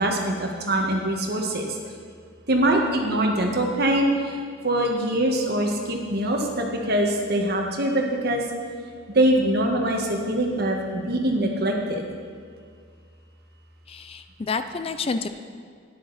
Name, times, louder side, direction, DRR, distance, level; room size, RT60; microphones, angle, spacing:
voice 1, 0.0-1.8 2.5-4.4 4.6-8.5 9.1-12.0, right 1 dB, 55° right, 1 dB, 1.5 m, -23 dB
voice 2, 13.9-15.3, left 4 dB, 30° left, 10 dB, 0.4 m, -29 dB
12.5 x 9.9 x 4.1 m, 2.1 s
head